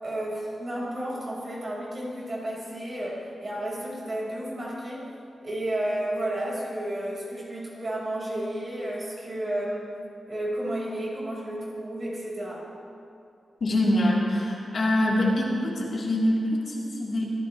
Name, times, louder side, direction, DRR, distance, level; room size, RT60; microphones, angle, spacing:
voice 1, 0.0-5.0 5.4-9.9 10.3-12.7, right 1 dB, 35° right, -4 dB, 4.7 m, -32 dB
voice 2, 13.6-17.3, left 1 dB, 50° left, -5 dB, 3.4 m, -24 dB
25.0 x 16.0 x 3.2 m, 2.5 s
wide cardioid pair, 145°, 0 cm